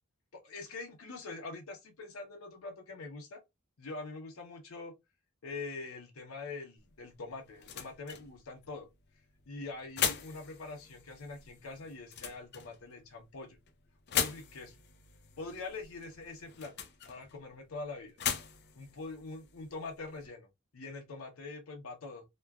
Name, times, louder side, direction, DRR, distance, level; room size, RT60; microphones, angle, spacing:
voice 1, 0.3-3.4 3.8-4.9 5.4-8.9 9.5-13.6 14.1-14.8 15.4-16.7 17.1-18.2 18.8-20.5 20.7-22.2, left 3 dB, 90° left, 0.7 m, -44 dB
sound 1, 6.8-20.3, left 8 dB, 55° left, 0.5 m, -40 dB
3.0 x 2.2 x 2.3 m
head